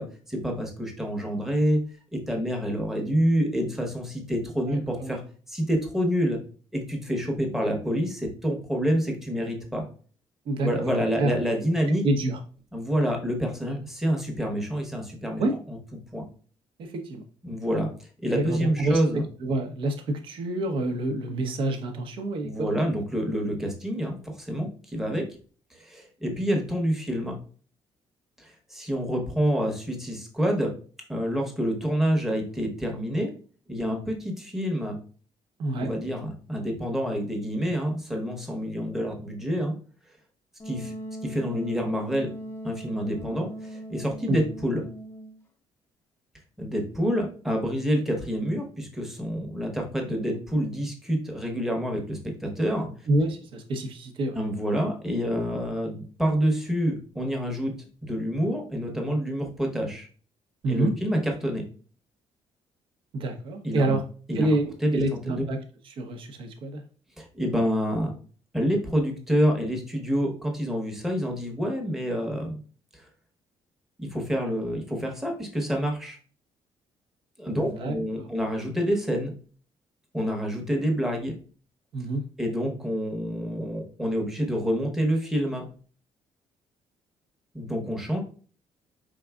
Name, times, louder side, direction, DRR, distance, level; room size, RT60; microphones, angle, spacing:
voice 1, 0.0-1.8 2.1-5.2 5.5-6.4 6.7-9.9 10.6-12.0 12.7-15.4 15.7-15.8 16.1-16.3 17.4-17.9 18.2-19.2 22.4-25.2 25.7-27.3 28.4-30.7 31.1-33.3 33.7-35.0 35.8-39.7 40.6-40.9 41.2-42.3 42.6-44.8 46.6-52.9 54.3-57.7 58.0-60.1 60.7-61.6 63.6-63.9 64.3-64.5 64.8-65.4 67.2-68.1 68.5-72.6 72.9-73.1 74.0-76.2 77.4-79.3 80.1-81.3 82.4-85.7 87.5-88.2, equal, 5° right, 1 dB, 0.9 m, -27 dB
voice 2, 4.7-5.1 10.5-11.4 12.0-12.4 15.4-15.6 16.8-17.2 18.3-19.0 19.4-22.8 35.6-35.9 44.3-44.4 53.1-54.4 60.6-60.9 63.1-64.0 64.3-65.6 65.9-66.8 77.5-78.3 81.9-82.2, right 2 dB, 60° right, 5 dB, 0.8 m, -27 dB
Wind instrument woodwind instrument, 40.6-45.4, equal, 20° left, 0.5 m, -39 dB
4.6 x 3.7 x 2.3 m, 0.40 s
cardioid pair, 155°, 10 cm